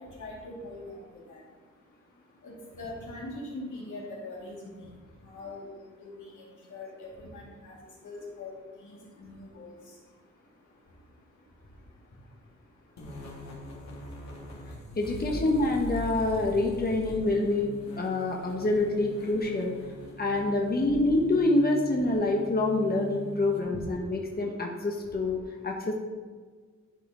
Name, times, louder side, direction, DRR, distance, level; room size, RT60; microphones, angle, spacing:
voice 1, 0.0-15.0 17.0-17.2 17.8-18.7 19.9-20.2 24.0-24.4 25.0-25.6, left 2 dB, 85° left, -5 dB, 2.4 m, -45 dB
sound 1, 13.0-23.9, left 1 dB, 65° left, 1.9 m, -42 dB
voice 2, 15.0-19.7 20.2-25.4 25.6-25.9, left 2 dB, 30° left, 0 dB, 1.1 m, -26 dB
11.5 x 4.2 x 3.8 m, 1.5 s
cardioid pair, 80°, 30 cm